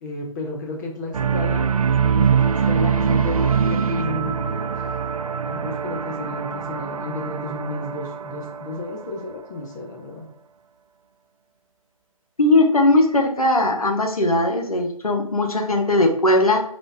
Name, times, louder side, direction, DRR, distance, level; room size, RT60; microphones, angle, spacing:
voice 1, 0.0-1.7 2.1-4.7 5.4-10.3, left 2 dB, 30° left, 0 dB, 0.8 m, -32 dB
sound 1, 1.1-9.4, right 6 dB, 80° right, 0.5 m, -23 dB
voice 2, 12.4-16.6, left 2 dB, 90° left, 3 dB, 1.0 m, -19 dB
4.1 x 3.5 x 3.4 m, 0.69 s
figure-of-eight pair, 140°, 18 cm